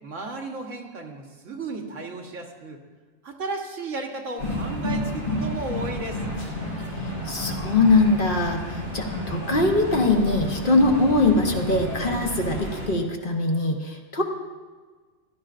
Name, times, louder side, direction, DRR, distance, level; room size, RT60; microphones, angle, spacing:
voice 1, 0.0-2.8 3.2-6.2, right 2 dB, 80° right, 1 dB, 1.7 m, -34 dB
sound 1, 4.4-12.9, equal, 90° left, 3.9 m, -31 dB
voice 2, 7.2-14.2, left 2 dB, 45° left, 2 dB, 1.1 m, -22 dB
15.0 x 12.5 x 2.5 m, 1.4 s
omnidirectional pair, 1.3 m